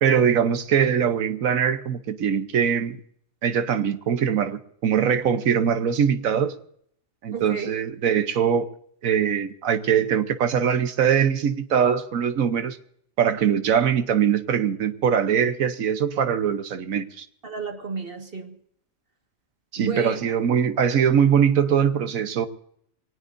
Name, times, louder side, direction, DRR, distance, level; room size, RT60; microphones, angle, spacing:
voice 1, 0.0-3.0 3.4-6.5 7.2-8.7 9.0-12.8 13.2-17.3 19.7-22.5, right 8 dB, 85° right, 1.4 m, -22 dB
voice 2, 7.3-7.7 17.4-18.5 19.8-20.2, right 5 dB, 45° right, 1.9 m, -32 dB
24.5 x 18.5 x 2.6 m
omnidirectional pair, 1.4 m